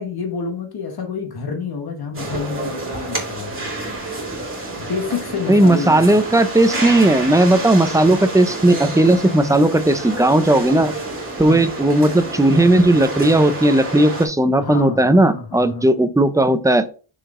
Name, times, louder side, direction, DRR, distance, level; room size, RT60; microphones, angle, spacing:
voice 1, 0.0-3.7 4.8-6.0 11.5-11.6 14.6-15.9, left 5 dB, 50° left, 4 dB, 1.1 m, -28 dB
sound 1, 2.1-14.3, right 2 dB, 25° right, 2.2 m, -29 dB
voice 2, 5.5-10.9 11.4-16.9, right 1 dB, 10° right, 10 dB, 0.4 m, -15 dB
6.4 x 4.7 x 3.6 m, 0.36 s
wide cardioid pair, 165°, 48 cm